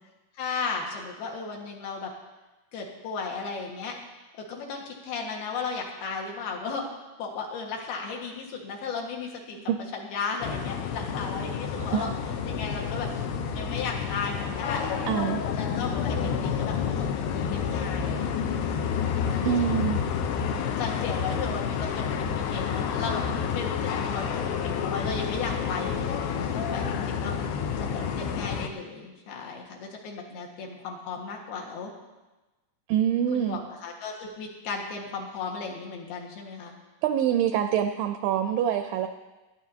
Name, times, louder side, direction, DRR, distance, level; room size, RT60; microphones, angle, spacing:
voice 1, 0.4-2.1 2.7-4.0 4.5-9.6 9.9-12.1 12.5-13.1 13.5-14.8 15.6-17.1 17.4-18.8 19.2-19.7 20.6-31.9 33.3-36.7, left 5 dB, 70° left, -1 dB, 3.5 m, -35 dB
sound 1, 10.4-28.7, left 7 dB, 90° left, 2.9 m, -29 dB
voice 2, 11.8-12.1 15.1-15.4 19.4-20.0 32.9-33.6 37.0-39.1, right 10 dB, 85° right, 7 dB, 2.0 m, -25 dB
18.5 x 13.0 x 2.8 m, 1.1 s
omnidirectional pair, 4.6 m